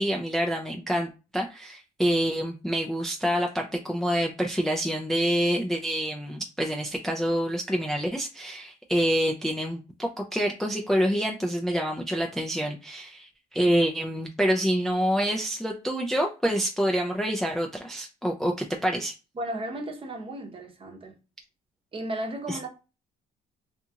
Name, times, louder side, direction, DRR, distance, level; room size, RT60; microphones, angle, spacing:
voice 1, 0.0-19.1 22.5-22.6, equal, ahead, 0.3 m, -27 dB
voice 2, 19.3-21.2 21.9-22.7, right 1 dB, 30° right, 0.8 m, -34 dB
2.8 x 2.4 x 2.7 m
cardioid pair, 110°, 17 cm